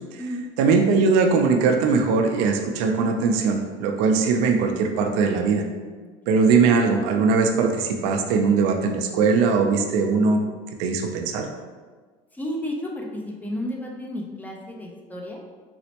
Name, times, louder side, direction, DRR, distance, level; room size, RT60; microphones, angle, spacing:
voice 1, 0.6-5.6 6.3-10.4 10.8-11.5, right 4 dB, 80° right, 4 dB, 0.4 m, -20 dB
voice 2, 12.3-15.4, equal, 10° left, -1 dB, 0.5 m, -32 dB
4.2 x 2.0 x 2.8 m, 1.4 s
supercardioid pair, 115°, 16 cm